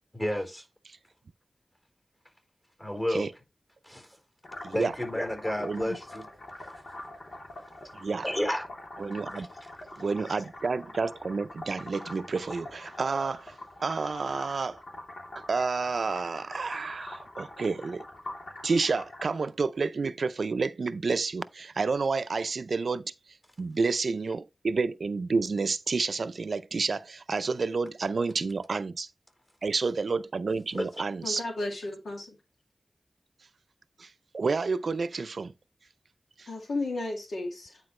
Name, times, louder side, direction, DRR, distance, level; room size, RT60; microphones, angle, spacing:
voice 1, 0.1-0.6 2.8-3.3 3.8-4.1 4.7-6.3 8.2-8.7 9.3-9.5 30.7-31.0, equal, 25° left, 4.2 m, -31 dB
sound 1, 4.4-19.2, left 1 dB, 65° left, 2.9 m, -44 dB
voice 2, 5.6-6.0 7.9-8.3 9.0-9.5 10.0-13.5 13.8-14.8 15.4-18.0 18.6-23.1 23.6-29.1 29.6-31.4 34.0-34.1 34.3-35.5 36.4-36.5, right 4 dB, 75° right, 0.4 m, -30 dB
voice 3, 31.2-32.4 36.5-37.8, left 2 dB, 85° left, 2.1 m, -34 dB
9.7 x 4.4 x 3.2 m
wide cardioid pair, 60°, 0 cm